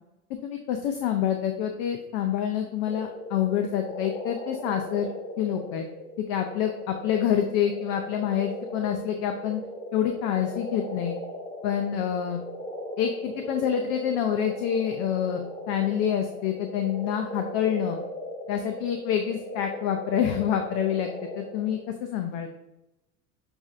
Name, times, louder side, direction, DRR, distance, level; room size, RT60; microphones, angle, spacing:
voice 1, 0.4-5.1 5.4-5.9 6.3-9.6 9.9-11.2 11.6-12.4 13.0-18.0 18.5-22.5, left 9 dB, 55° left, 5 dB, 0.6 m, -27 dB
sound 1, 2.9-21.9, equal, 15° left, 0.8 m, -38 dB
7.0 x 2.7 x 2.5 m, 0.91 s
hypercardioid pair, 90°, 44 cm